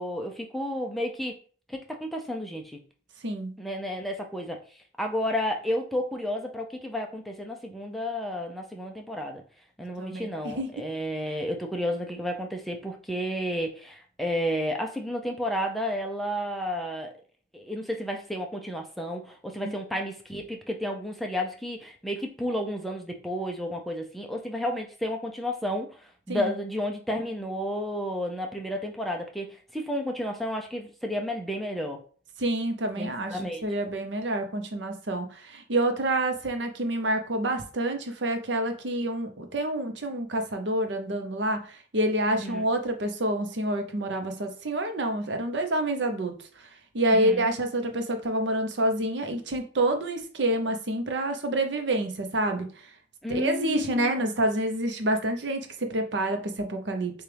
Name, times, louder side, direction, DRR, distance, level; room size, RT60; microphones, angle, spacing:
voice 1, 0.0-1.3 1.7-2.8 3.6-4.6 5.0-9.4 9.8-17.2 17.5-26.0 26.3-29.5 29.7-32.0 33.0-33.6 42.3-42.6 47.1-47.5 53.2-54.3, equal, ahead, 2 dB, 0.5 m, -31 dB
voice 2, 10.0-10.7 11.3-11.4 19.6-19.7 26.3-26.5 32.4-46.7 46.9-52.9 53.3-57.2, right 1 dB, 65° right, 6 dB, 0.7 m, -28 dB
6.8 x 2.4 x 3.3 m, 0.42 s
head